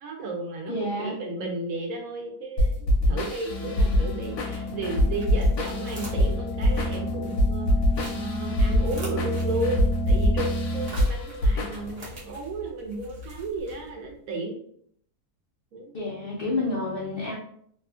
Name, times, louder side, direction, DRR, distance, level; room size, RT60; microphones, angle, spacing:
voice 1, 0.0-2.8 3.1-7.7 8.1-14.6 15.7-15.9, right 2 dB, 70° right, 1 dB, 1.0 m, -33 dB
voice 2, 0.7-1.1 15.9-17.3, left 2 dB, 80° left, -4 dB, 0.5 m, -29 dB
sound 1, 2.6-12.1, equal, 60° left, 0.8 m, -24 dB
sound 2, 3.3-14.2, left 1 dB, 35° right, 0.6 m, -44 dB
sound 3, 3.5-10.9, equal, 20° right, 1.0 m, -31 dB
2.7 x 2.3 x 2.4 m, 0.64 s
omnidirectional pair, 1.7 m